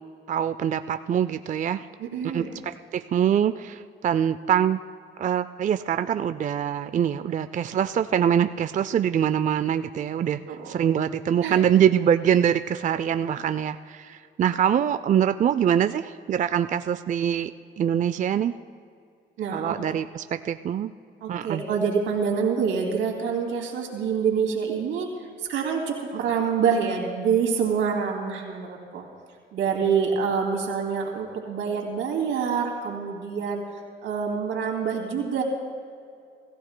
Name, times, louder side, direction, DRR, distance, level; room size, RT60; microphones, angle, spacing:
voice 1, 0.3-1.9 2.2-4.8 5.2-10.4 10.7-17.5 17.8-18.5 19.5-20.9 21.3-21.6, right 9 dB, 40° right, 11 dB, 0.4 m, -24 dB
voice 2, 2.0-2.6 10.5-10.7 11.4-11.6 19.4-19.8 21.2-25.1 25.4-29.0 29.5-33.6 34.0-35.4, right 6 dB, 85° right, 1 dB, 2.6 m, -26 dB
26.0 x 15.0 x 2.2 m, 2.3 s
cardioid pair, 90°, 20 cm